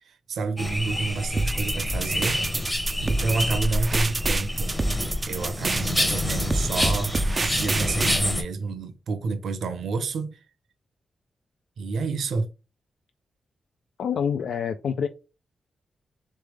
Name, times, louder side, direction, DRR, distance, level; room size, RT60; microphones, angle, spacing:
voice 1, 0.0-2.7 3.0-4.8 5.2-10.4 11.8-12.5, right 4 dB, 75° right, 0.8 m, -29 dB
sound 1, 0.6-8.4, left 1 dB, 10° left, 0.8 m, -27 dB
sound 2, 1.4-8.2, right 2 dB, 25° right, 0.3 m, -28 dB
voice 2, 14.0-15.1, left 7 dB, 80° left, 0.4 m, -26 dB
3.8 x 3.3 x 3.4 m
wide cardioid pair, 160°, 0 cm